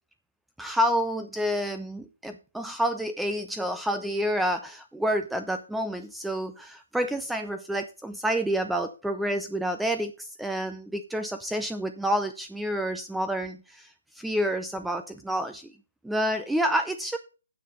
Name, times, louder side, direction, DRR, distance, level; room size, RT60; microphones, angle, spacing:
voice 1, 0.6-15.7 16.0-17.2, equal, 5° right, 8 dB, 0.5 m, -29 dB
9.3 x 5.6 x 6.7 m, 0.34 s
hypercardioid pair, 145°, 0 cm